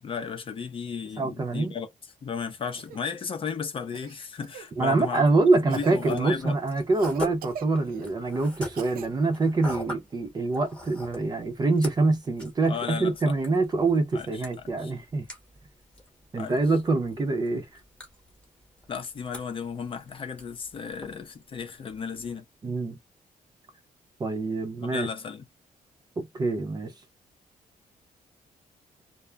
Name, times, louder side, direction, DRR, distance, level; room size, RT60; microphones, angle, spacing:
voice 1, 0.0-5.3 5.5-6.6 12.7-13.4 14.1-14.4 14.8-14.9 16.4-16.6 18.9-22.4 24.9-25.5, left 6 dB, 40° left, 0.5 m, -34 dB
voice 2, 1.2-1.7 4.8-15.3 16.3-17.7 22.6-23.0 24.2-25.1 26.2-26.9, right 3 dB, 30° right, 0.6 m, -25 dB
Cough, 2.8-3.0 3.9-4.7 5.7-6.0 6.9-8.1 8.7-9.1 9.7-9.8 11.6-11.7, right 8 dB, 90° right, 0.5 m, -42 dB
sound 1, 5.7-22.3, left 1 dB, 5° left, 0.9 m, -44 dB
2.1 x 2.1 x 3.3 m
wide cardioid pair, 160°, 15 cm